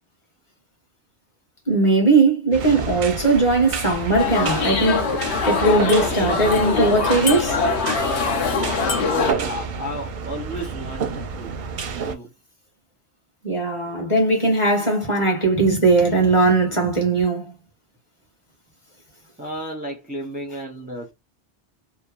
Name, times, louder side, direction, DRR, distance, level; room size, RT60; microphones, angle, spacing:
voice 1, 1.7-7.6 13.4-17.5, right 3 dB, 25° left, 1.2 m, -19 dB
sound 1, 2.5-12.1, right 5 dB, 55° right, 0.6 m, -30 dB
sound 2, 4.2-9.3, left 4 dB, 70° left, 1.0 m, -22 dB
voice 2, 9.1-11.5 12.0-12.3 19.4-21.1, equal, 10° right, 0.6 m, -32 dB
3.0 x 2.1 x 2.3 m
omnidirectional pair, 1.2 m